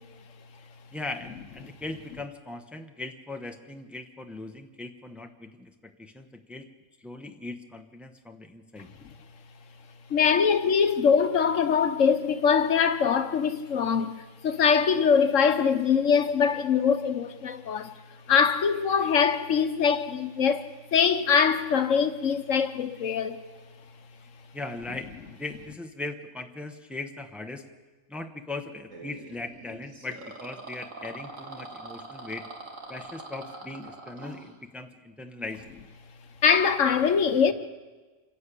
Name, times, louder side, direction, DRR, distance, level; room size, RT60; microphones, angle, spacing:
voice 1, 0.9-6.7 7.0-8.9 24.5-27.6 28.1-32.4 32.9-35.6, left 2 dB, ahead, 1.0 m, -39 dB
voice 2, 10.1-17.9 18.3-23.4 36.4-37.5, left 6 dB, 75° left, 1.3 m, -23 dB
sound 1, 28.9-34.5, right 2 dB, 80° right, 2.8 m, -43 dB
26.5 x 11.5 x 8.4 m
omnidirectional pair, 1.3 m